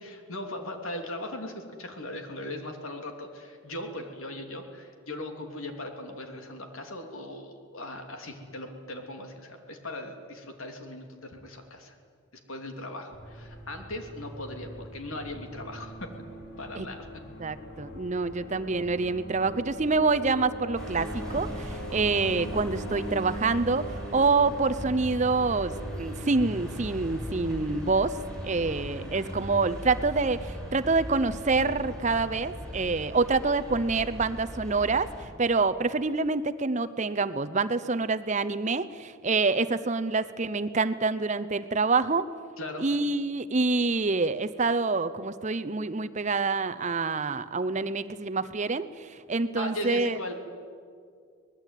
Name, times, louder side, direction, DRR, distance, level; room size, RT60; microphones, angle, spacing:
voice 1, 0.0-12.0 12.5-16.1 16.6-17.1 28.7-28.8 42.6-42.9 49.6-50.3, left 1 dB, 70° left, 4 dB, 3.1 m, -38 dB
sound 1, 13.1-33.0, equal, 50° left, 3.8 m, -41 dB
voice 2, 17.4-28.2 28.4-42.3 42.8-50.2, right 3 dB, 30° right, 11 dB, 0.7 m, -27 dB
sound 2, 20.7-35.2, equal, 5° left, 5.2 m, -40 dB
24.5 x 20.0 x 9.2 m, 2.2 s
head